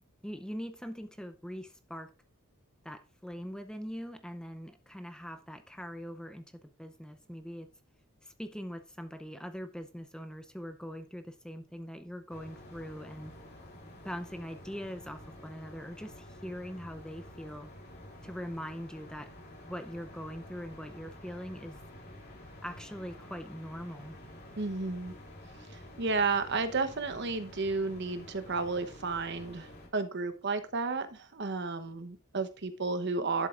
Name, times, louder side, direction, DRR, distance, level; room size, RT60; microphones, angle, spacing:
voice 1, 0.2-2.1 2.8-7.7 8.2-13.3 14.0-17.7 18.2-19.3 19.6-21.8 22.6-24.2, equal, 5° left, 8 dB, 0.6 m, -42 dB
sound 1, 12.3-29.9, left 1 dB, 45° left, 3.3 m, -50 dB
voice 2, 24.6-25.1 26.0-33.5, right 3 dB, 55° right, 10 dB, 0.9 m, -32 dB
11.0 x 7.5 x 2.4 m, 0.32 s
head